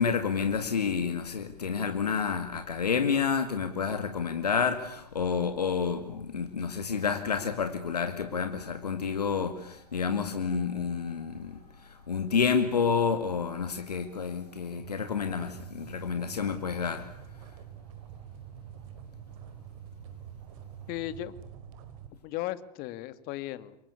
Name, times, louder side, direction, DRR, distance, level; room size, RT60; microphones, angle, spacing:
voice 1, 0.0-17.1, left 6 dB, 85° left, 2.2 m, -29 dB
sound 1, 7.7-22.1, right 9 dB, 60° right, 4.6 m, -49 dB
voice 2, 20.9-21.4 22.2-23.8, left 14 dB, 50° left, 2.1 m, -36 dB
29.0 x 24.0 x 8.5 m
hypercardioid pair, 90°, 20 cm